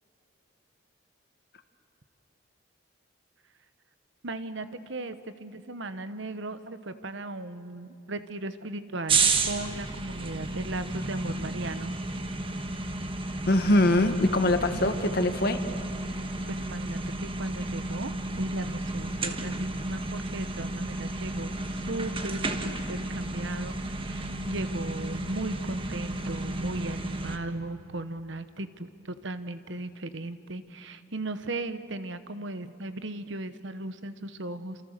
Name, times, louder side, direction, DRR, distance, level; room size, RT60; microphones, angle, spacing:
voice 1, 4.2-11.9 16.5-21.6 21.9-34.8, right 2 dB, 60° right, 11 dB, 1.1 m, -37 dB
sound 1, 9.1-27.4, right 3 dB, 25° right, 1.4 m, -32 dB
voice 2, 13.5-15.6, left 1 dB, 50° left, 8 dB, 1.5 m, -23 dB
28.0 x 28.0 x 6.6 m, 2.7 s
head